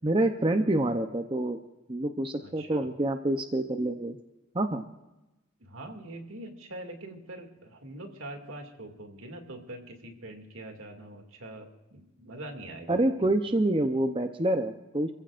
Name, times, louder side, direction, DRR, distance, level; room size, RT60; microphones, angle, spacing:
voice 1, 0.0-1.6 1.9-4.2 4.5-4.8 12.9-15.1, right 1 dB, 25° right, 6 dB, 0.7 m, -27 dB
voice 2, 2.4-2.9 5.6-13.3, right 1 dB, 75° right, 4 dB, 2.4 m, -43 dB
27.5 x 15.5 x 2.5 m, 0.99 s
head